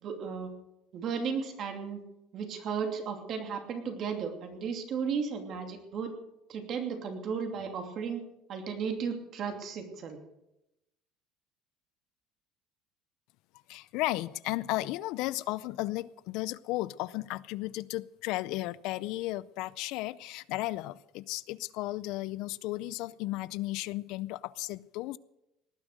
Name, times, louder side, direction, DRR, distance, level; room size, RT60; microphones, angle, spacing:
voice 1, 0.0-0.5 0.9-2.0 2.3-6.1 6.5-8.2 8.5-10.2, right 6 dB, 40° right, 5 dB, 2.7 m, -34 dB
voice 2, 13.7-25.2, left 18 dB, 65° left, 19 dB, 0.5 m, -34 dB
18.5 x 10.0 x 6.5 m, 0.87 s
cardioid pair, 155°, 0 cm